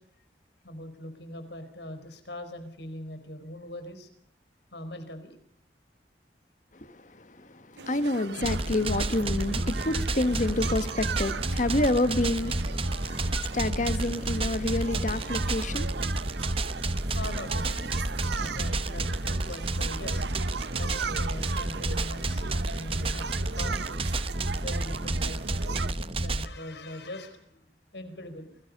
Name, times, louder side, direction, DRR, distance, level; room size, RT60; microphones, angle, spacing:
voice 1, 0.6-4.1 4.7-5.4 15.1-15.7 17.1-18.1 18.3-20.2 20.8-24.0 24.6-28.6, left 1 dB, 80° left, 4.7 m, -42 dB
voice 2, 6.7-15.9, left 2 dB, 45° left, 1.5 m, -29 dB
sound 1, 7.8-25.9, right 5 dB, 75° right, 0.8 m, -39 dB
sound 2, 8.4-26.5, right 2 dB, 30° right, 1.1 m, -30 dB
28.5 x 20.5 x 5.4 m
head